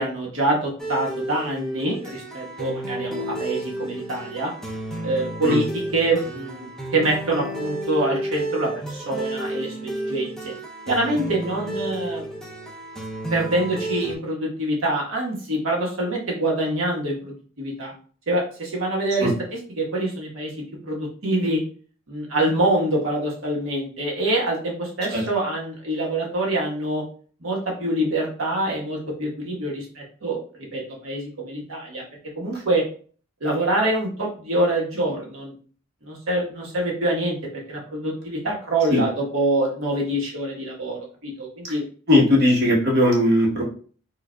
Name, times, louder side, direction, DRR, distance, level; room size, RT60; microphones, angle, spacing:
voice 1, 0.0-4.5 5.0-10.5 10.9-12.2 13.3-17.9 18.3-19.3 19.8-20.5 20.8-21.6 22.1-27.0 27.4-30.4 30.7-32.0 32.4-32.8 33.4-35.5 36.0-37.4 37.7-41.8, right 1 dB, 70° right, -2 dB, 1.2 m, -25 dB
sound 1, 0.8-14.1, right 1 dB, ahead, 0.5 m, -31 dB
voice 2, 42.1-43.6, left 1 dB, 50° right, -3 dB, 1.1 m, -18 dB
4.8 x 2.5 x 2.2 m, 0.43 s
head